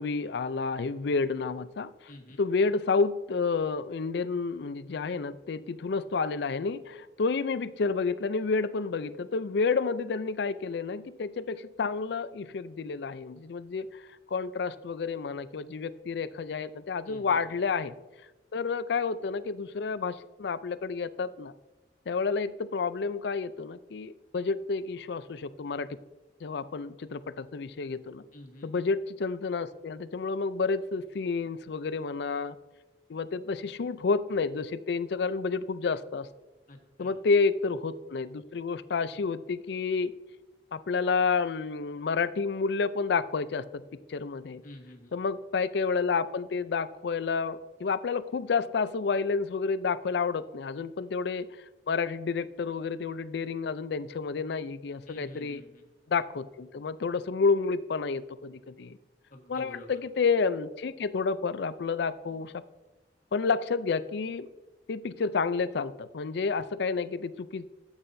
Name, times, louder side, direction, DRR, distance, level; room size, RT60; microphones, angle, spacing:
voice 1, 0.0-1.9 2.4-14.0 14.3-17.9 18.5-21.5 22.1-25.9 26.4-28.2 28.6-32.6 33.1-36.3 37.0-40.1 40.7-43.8 44.1-44.6 45.1-51.5 51.9-55.6 56.1-59.0 59.5-62.5 63.3-64.5 64.9-67.7, left 4 dB, 65° left, 15 dB, 0.4 m, -30 dB
voice 2, 2.1-2.4 17.0-17.4 28.3-28.7 36.7-37.2 44.6-45.1 55.1-55.8 59.3-60.0, left 1 dB, 50° left, 3 dB, 1.5 m, -48 dB
12.5 x 8.7 x 2.7 m, 1.1 s
head